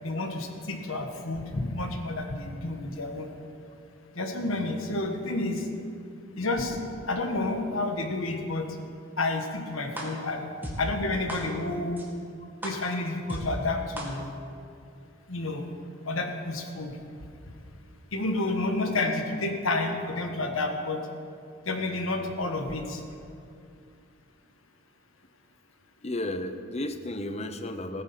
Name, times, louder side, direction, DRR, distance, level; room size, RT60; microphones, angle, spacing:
voice 1, 0.0-3.3 4.1-5.7 6.4-6.8 7.1-8.7 9.2-10.5 10.8-12.0 12.6-14.3 15.3-15.7 16.1-16.9 18.1-21.0 21.6-23.0, left 2 dB, 70° left, 4 dB, 1.5 m, -30 dB
sound 1, 10.0-10.1 10.6-10.7 11.3-11.4 12.0-12.1 12.6-12.7 13.3-13.4 14.0-14.1, right 1 dB, 10° right, 1.9 m, -34 dB
voice 2, 26.0-28.0, left 1 dB, 30° left, 8 dB, 0.8 m, -33 dB
16.5 x 9.4 x 5.9 m, 2.4 s
head